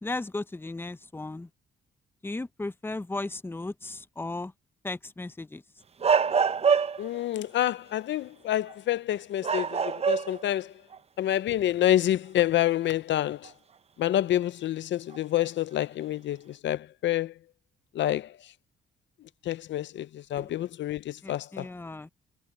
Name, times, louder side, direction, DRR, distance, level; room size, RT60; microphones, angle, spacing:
voice 1, 0.0-1.5 2.2-4.5 4.8-5.6 20.3-20.5 21.2-22.1, left 2 dB, 10° left, 0.8 m, -35 dB
sound 1, 6.0-7.2 8.7-8.9 9.4-10.5 10.9-11.0 13.4-13.5 15.1-15.4, right 6 dB, 30° right, 0.7 m, -25 dB
voice 2, 7.0-10.7 11.2-13.5 14.0-17.3 17.9-18.3 19.4-21.7, left 12 dB, 65° left, 0.6 m, -28 dB
cardioid pair, 90°, 20 cm